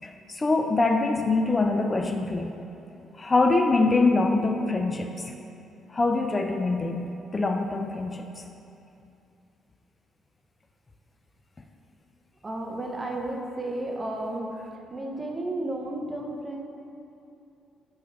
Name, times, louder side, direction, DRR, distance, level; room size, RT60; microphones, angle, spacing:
voice 1, 0.0-2.5 3.2-5.3 5.9-8.4, left 3 dB, 25° left, 5 dB, 0.3 m, -24 dB
voice 2, 12.4-14.6 14.9-16.6, right 1 dB, 25° right, 1 dB, 0.8 m, -32 dB
6.0 x 4.0 x 5.8 m, 2.7 s
cardioid pair, 90°, 0 cm